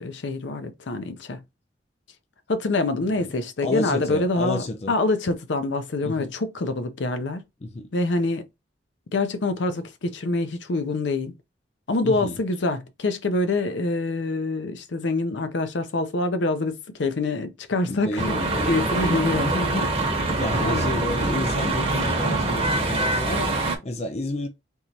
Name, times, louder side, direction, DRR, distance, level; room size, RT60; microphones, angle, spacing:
voice 1, 0.0-1.4 2.5-7.4 7.9-8.4 9.1-11.3 11.9-18.4 18.7-19.5 19.8-19.9 20.6-20.9, left 2 dB, 80° left, 0.6 m, -25 dB
voice 2, 3.6-4.9 6.0-6.3 7.6-7.9 12.0-12.4 17.8-19.9 20.4-24.5, left 1 dB, 35° left, 0.5 m, -30 dB
sound 1, 18.2-23.8, right 2 dB, 30° right, 0.8 m, -24 dB
3.7 x 3.0 x 2.8 m
head